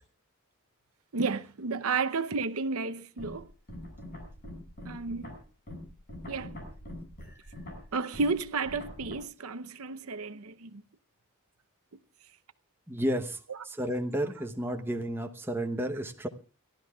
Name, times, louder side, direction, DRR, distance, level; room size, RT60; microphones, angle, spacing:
voice 1, 1.1-3.5 4.8-5.3 6.3-6.6 7.9-10.8, right 4 dB, 80° right, 0.8 m, -32 dB
sound 1, 3.2-9.1, left 1 dB, 45° left, 6.3 m, -44 dB
voice 2, 12.9-16.3, equal, 10° right, 0.9 m, -32 dB
30.0 x 12.5 x 2.4 m
head